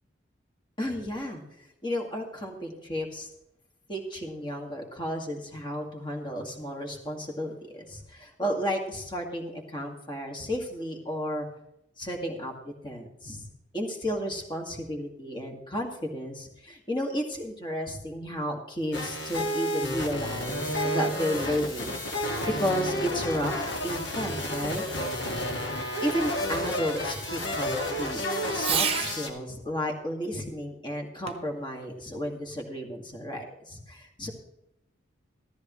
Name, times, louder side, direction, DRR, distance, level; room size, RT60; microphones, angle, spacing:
voice 1, 0.8-1.4 1.8-3.3 3.9-11.5 12.0-13.5 13.7-22.0 22.5-23.5 23.8-24.8 26.0-28.3 28.5-34.3, equal, 25° left, 1 dB, 2.0 m, -33 dB
sound 1, 18.9-29.3, left 1 dB, 60° left, 1.9 m, -31 dB
Fireworks, 19.9-29.2 31.3-31.6 32.3-32.4, right 7 dB, 30° right, 1.0 m, -38 dB
14.5 x 13.5 x 3.1 m, 0.83 s
head